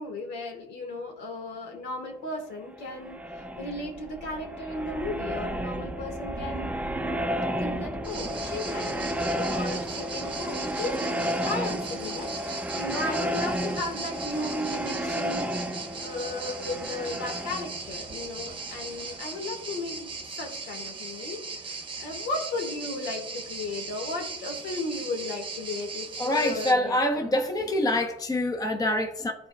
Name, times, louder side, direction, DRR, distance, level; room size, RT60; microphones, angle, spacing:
voice 1, 0.0-6.7 7.6-15.5 15.8-21.7 22.0-27.3, left 2 dB, 75° left, 2 dB, 1.7 m, -35 dB
sound 1, 2.7-19.4, equal, 10° right, 0.4 m, -32 dB
sound 2, 8.0-26.7, right 4 dB, 30° right, 0.9 m, -38 dB
voice 2, 26.2-29.3, left 1 dB, 20° left, 4 dB, 0.8 m, -25 dB
12.0 x 4.1 x 2.3 m, 0.80 s
cardioid pair, 110°, 17 cm